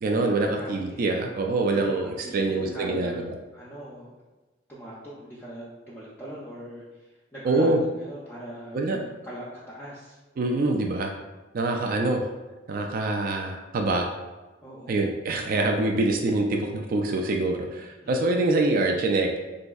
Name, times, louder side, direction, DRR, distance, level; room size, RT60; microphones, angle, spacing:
voice 1, 0.0-3.2 7.4-7.8 8.7-9.0 10.4-11.1 11.5-12.3 12.7-14.1 14.9-19.3, right 2 dB, 50° right, 2 dB, 0.3 m, -25 dB
voice 2, 0.5-1.0 1.7-1.9 2.2-3.2 3.5-4.2 4.7-10.2 14.6-15.1 18.0-18.3, right 1 dB, 10° left, -8 dB, 0.5 m, -41 dB
4.0 x 2.6 x 2.3 m, 1.2 s
head